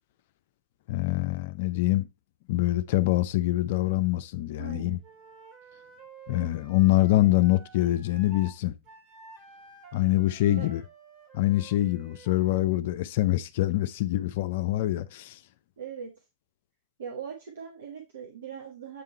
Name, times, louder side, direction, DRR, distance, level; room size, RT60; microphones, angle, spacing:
voice 1, 0.9-2.1 2.5-5.0 6.3-8.7 9.9-10.8 11.3-15.4, left 16 dB, 60° left, 0.5 m, -25 dB
voice 2, 4.6-5.0 10.5-10.7 15.8-16.1 17.0-19.0, right 7 dB, 70° right, 1.5 m, -40 dB
Wind instrument woodwind instrument, 5.0-8.6 8.8-12.7, right 4 dB, 45° right, 2.2 m, -51 dB
8.4 x 3.6 x 4.4 m
figure-of-eight pair, 95°, 0 cm